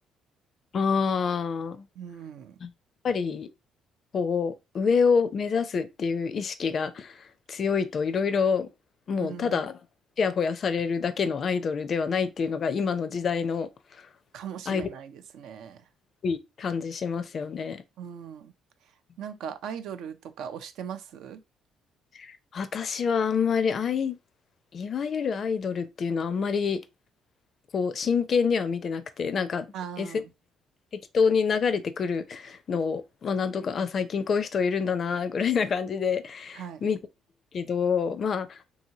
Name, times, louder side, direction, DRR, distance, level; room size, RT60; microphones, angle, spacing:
voice 1, 0.7-1.9 2.6-2.7 3.0-3.5 4.1-7.2 7.5-8.7 9.1-9.8 10.2-13.7 14.7-14.9 16.2-17.8 22.2-24.2 24.7-26.8 27.7-29.7 30.0-30.2 31.1-37.0 37.5-38.6, left 6 dB, 50° left, 0.4 m, -27 dB
voice 2, 2.0-2.6 9.2-9.6 14.3-15.8 18.0-18.5 19.2-21.4 29.7-30.3 36.5-36.8, right 8 dB, 75° right, 0.3 m, -39 dB
2.8 x 2.7 x 2.7 m
supercardioid pair, 65°, 0 cm